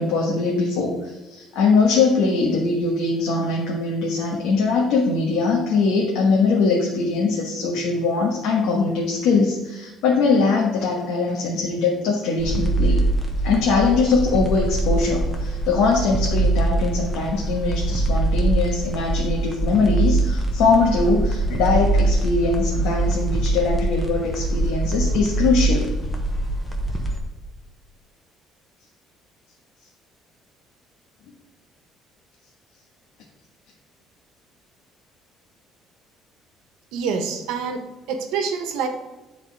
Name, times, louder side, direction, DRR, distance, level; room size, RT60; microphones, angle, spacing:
voice 1, 0.0-13.0 13.4-25.9, left 4 dB, 85° left, -2 dB, 1.3 m, -21 dB
sound 1, 12.4-27.2, right 2 dB, 10° left, 0.9 m, -23 dB
voice 2, 36.9-37.8 38.1-38.9, right 6 dB, 85° right, 6 dB, 1.1 m, -26 dB
9.4 x 4.1 x 4.6 m, 1.1 s
cardioid pair, 175°, 0 cm